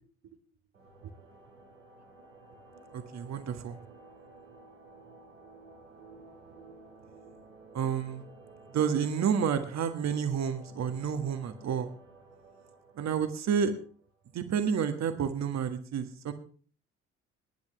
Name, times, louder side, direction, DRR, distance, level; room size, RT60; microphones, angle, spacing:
sound 1, 0.7-14.3, right 3 dB, 80° right, 2.7 m, -54 dB
voice 1, 2.9-3.8 7.7-8.2 8.7-11.9 13.0-13.7 14.3-16.3, right 7 dB, 45° right, 9 dB, 1.7 m, -30 dB
21.5 x 10.5 x 3.3 m, 0.43 s
figure-of-eight pair, 50°, 38 cm